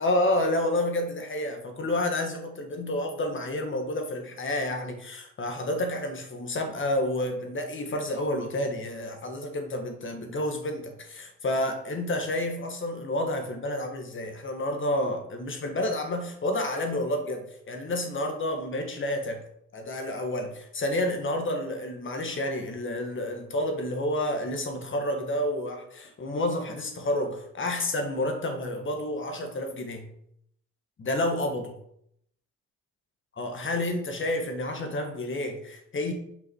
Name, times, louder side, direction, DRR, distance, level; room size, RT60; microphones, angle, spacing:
voice 1, 0.0-19.4 19.7-30.1 31.0-31.8 33.4-36.1, left 1 dB, 40° left, 4 dB, 1.7 m, -30 dB
5.7 x 5.5 x 4.6 m, 0.72 s
cardioid pair, 90°, 30 cm